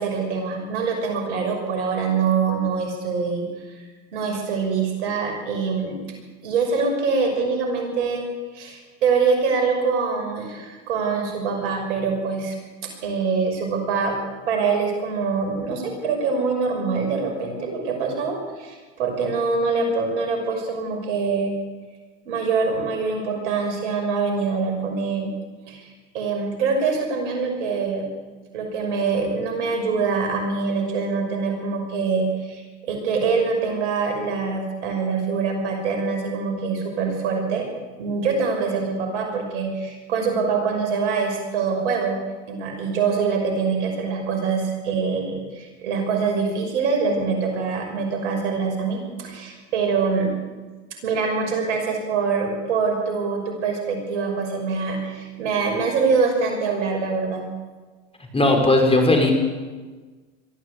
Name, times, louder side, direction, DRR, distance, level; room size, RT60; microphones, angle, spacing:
voice 1, 0.0-3.8 4.1-6.0 6.4-8.2 8.5-12.6 12.8-14.1 14.5-21.5 22.2-25.3 25.7-28.1 28.5-37.7 38.0-42.2 42.5-50.3 51.0-57.5, right 5 dB, 80° right, 3 dB, 5.9 m, -24 dB
voice 2, 58.3-59.3, left 2 dB, 15° left, 2 dB, 5.8 m, -17 dB
22.0 x 14.0 x 8.4 m, 1.3 s
hypercardioid pair, 85°, 34 cm